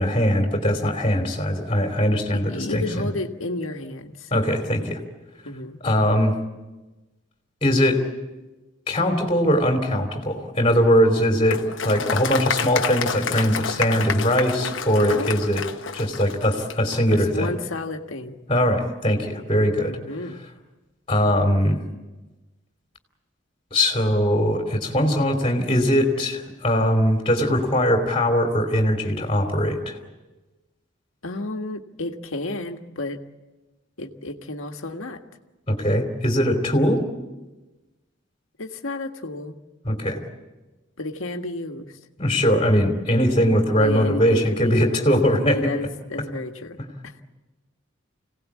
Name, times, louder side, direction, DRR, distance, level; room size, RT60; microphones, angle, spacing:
voice 1, 0.0-3.1 4.3-5.0 5.8-6.3 7.6-8.0 8.9-15.6 15.9-17.5 18.5-19.9 21.1-21.8 23.7-30.0 35.7-37.0 39.8-40.2 42.2-45.7, equal, 25° left, 3 dB, 2.9 m, -21 dB
voice 2, 2.3-4.3 5.4-5.8 15.0-15.3 17.1-18.4 19.8-20.4 31.2-33.2 34.0-35.2 38.6-39.5 41.0-42.0 43.8-46.8 47.0-47.2, left 2 dB, 85° left, 5 dB, 1.6 m, -31 dB
Applause, 11.5-17.0, left 6 dB, 70° left, 1.0 m, -29 dB
26.0 x 18.0 x 8.4 m, 1.2 s
head